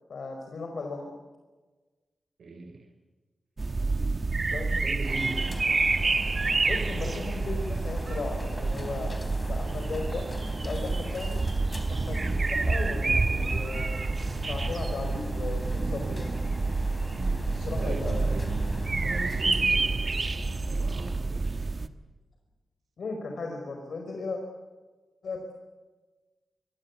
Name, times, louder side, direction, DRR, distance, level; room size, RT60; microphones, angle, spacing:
voice 1, 0.1-1.2 4.5-4.7 6.6-9.2 9.5-10.3 10.6-11.4 11.9-14.0 14.5-16.3 17.5-18.3 23.0-24.4 25.2-25.5, left 3 dB, 60° left, 3 dB, 5.0 m, -36 dB
voice 2, 2.4-2.8 4.0-5.6 17.1-21.8, right 3 dB, 75° right, 0 dB, 5.8 m, -40 dB
sound 1, 3.6-21.9, right 3 dB, 30° right, 1.2 m, -28 dB
sound 2, 5.0-21.2, left 2 dB, 15° left, 3.8 m, -41 dB
27.0 x 22.5 x 8.4 m, 1.2 s
wide cardioid pair, 170°, 0 cm